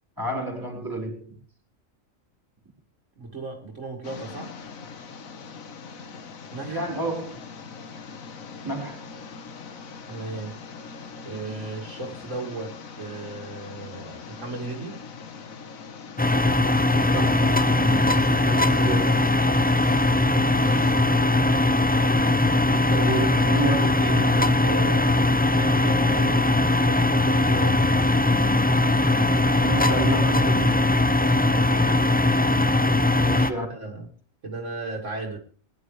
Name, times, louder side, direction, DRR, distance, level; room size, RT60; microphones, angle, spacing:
voice 1, 0.2-1.4 6.7-7.4 8.6-9.1 17.1-19.2 23.0-23.9 29.6-30.7 32.3-32.5 33.1-33.7, right 2 dB, 15° right, 4.4 m, -31 dB
voice 2, 3.2-4.6 6.5-6.9 10.1-10.6 11.2-15.0 20.3-21.2 22.6-25.2 25.5-26.5 26.8-27.9 31.3-31.8 32.4-32.7 33.5-34.1 34.4-35.4, right 3 dB, 65° right, 2.5 m, -35 dB
sound 1, 4.0-20.9, left 5 dB, 90° left, 1.7 m, -42 dB
sound 2, 16.2-33.5, left 2 dB, 10° left, 0.4 m, -20 dB
21.0 x 11.0 x 3.3 m
omnidirectional pair, 1.4 m